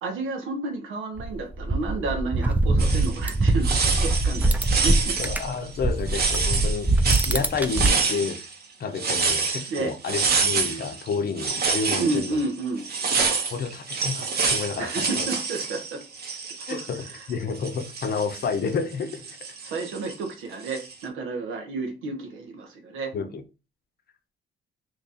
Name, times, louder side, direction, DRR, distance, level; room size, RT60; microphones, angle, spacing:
voice 1, 0.0-5.2 9.7-9.9 12.0-12.9 14.8-16.0 16.7-16.9 17.1-17.2 19.6-23.1, right 3 dB, 90° right, 1.0 m, -31 dB
sound 1, 1.2-5.5 5.8-7.9, right 2 dB, 10° right, 0.4 m, -23 dB
sound 2, 2.8-3.3 3.6-8.5 8.9-17.3 17.6-20.1 20.6-21.0, right 5 dB, 50° right, 0.9 m, -27 dB
voice 2, 5.2-8.4 8.8-12.4 13.5-15.3 16.7-19.2 23.1-23.4, left 5 dB, 50° left, 0.6 m, -30 dB
3.0 x 2.4 x 4.0 m
cardioid pair, 90°, 20 cm